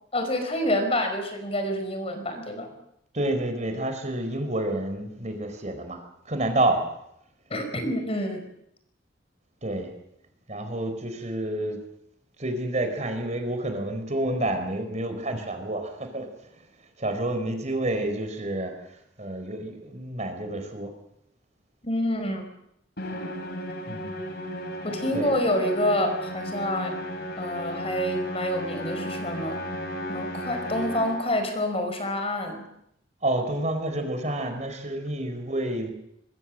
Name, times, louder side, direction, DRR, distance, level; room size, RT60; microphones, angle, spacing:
voice 1, 0.1-2.7 7.5-8.5 21.8-22.5 24.8-27.0 27.4-29.6 30.1-32.7, left 1 dB, 35° left, 7 dB, 5.2 m, -27 dB
voice 2, 3.1-6.8 9.6-9.9 10.5-11.8 12.4-16.3 17.0-18.7 19.2-20.9 23.9-24.2 25.1-25.3 33.2-35.9, right 1 dB, 40° right, 6 dB, 4.7 m, -29 dB
Musical instrument, 23.0-31.5, equal, 60° left, 4.0 m, -34 dB
24.0 x 23.0 x 7.7 m, 0.76 s
head